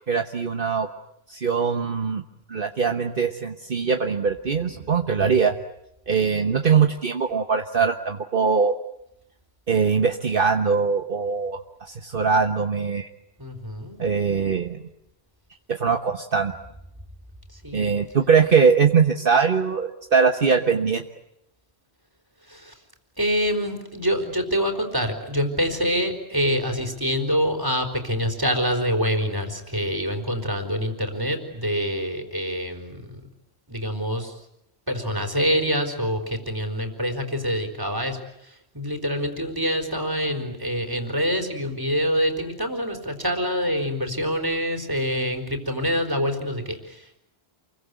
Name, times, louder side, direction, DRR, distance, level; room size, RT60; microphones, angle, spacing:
voice 1, 0.1-0.9 1.3-2.2 2.5-5.6 6.1-8.8 9.7-13.1 14.0-14.8 15.7-16.5 17.7-21.0, right 5 dB, 55° right, 5 dB, 1.4 m, -21 dB
voice 2, 13.4-14.0 17.5-18.0 22.5-22.7 23.2-33.2 33.7-34.4 34.9-47.2, equal, 20° right, 3 dB, 4.2 m, -26 dB
29.0 x 23.0 x 8.2 m, 0.79 s
omnidirectional pair, 1.1 m